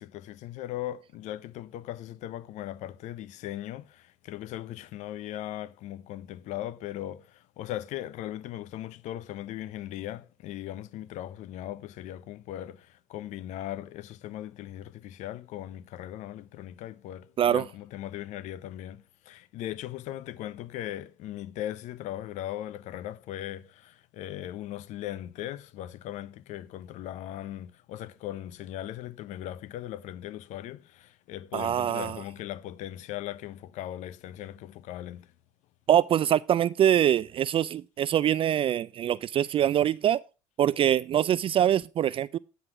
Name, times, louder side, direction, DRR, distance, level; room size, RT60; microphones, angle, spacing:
voice 1, 0.0-35.3, left 13 dB, 65° left, 0.6 m, -38 dB
voice 2, 31.5-32.2 35.9-40.2 40.6-42.4, right 10 dB, 45° right, 0.3 m, -24 dB
9.7 x 3.9 x 5.9 m
hypercardioid pair, 70°, 13 cm